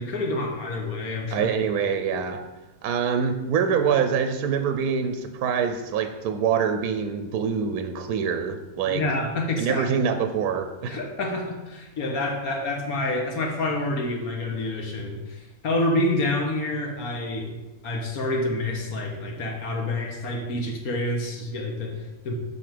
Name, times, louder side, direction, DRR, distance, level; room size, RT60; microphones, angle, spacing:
voice 1, 0.0-1.5 8.9-9.9 10.9-17.5 17.8-22.4, left 2 dB, 65° left, 2 dB, 1.6 m, -28 dB
voice 2, 1.3-2.4 2.8-9.0 9.6-11.0, right 7 dB, 75° right, 8 dB, 1.1 m, -25 dB
7.0 x 5.9 x 5.1 m, 1.1 s
omnidirectional pair, 1.7 m